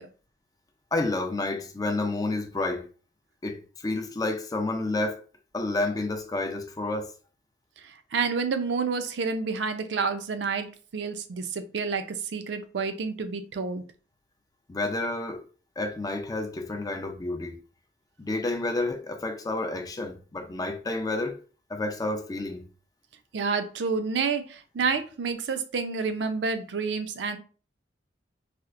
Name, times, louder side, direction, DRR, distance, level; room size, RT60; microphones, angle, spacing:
voice 1, 0.9-2.9 3.4-5.2 5.5-7.1 14.7-15.4 15.8-17.6 18.2-21.4 21.7-22.7, left 2 dB, 20° left, 0.4 m, -30 dB
voice 2, 8.1-10.7 10.9-12.0 12.3-13.8 23.3-27.4, right 5 dB, 70° right, 0.4 m, -29 dB
4.2 x 2.0 x 2.5 m
head